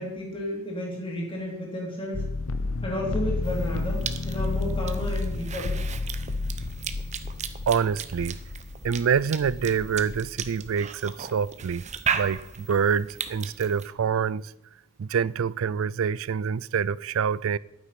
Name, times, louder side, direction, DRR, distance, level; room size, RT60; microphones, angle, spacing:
voice 1, 0.0-2.2 2.8-5.8, left 1 dB, 25° left, 3.0 m, -32 dB
sound 1, 2.1-10.5, left 3 dB, 70° left, 0.8 m, -31 dB
Cough / Chewing mastication, 3.4-13.9, right 7 dB, 30° right, 0.8 m, -36 dB
voice 2, 7.7-8.4 8.8-11.8 12.1-14.5 15.0-17.6, right 6 dB, 65° right, 0.4 m, -26 dB
11.5 x 9.2 x 5.8 m
head